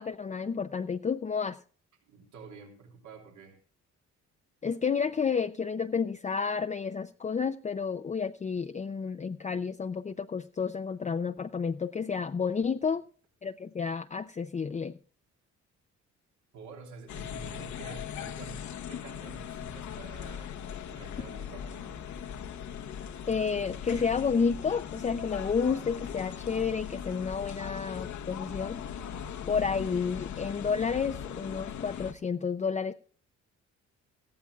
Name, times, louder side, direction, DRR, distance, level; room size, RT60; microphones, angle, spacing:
voice 1, 0.0-1.6 4.6-13.0 13.4-14.9 23.3-29.0 29.5-32.9, left 5 dB, 25° left, 7 dB, 0.6 m, -31 dB
voice 2, 2.0-3.6 16.5-20.6 20.9-22.1, right 5 dB, 75° right, 1 dB, 3.2 m, -49 dB
sound 1, 17.1-32.1, left 8 dB, 70° left, 1.1 m, -39 dB
18.0 x 14.0 x 2.4 m, 0.43 s
cardioid pair, 90°, 30 cm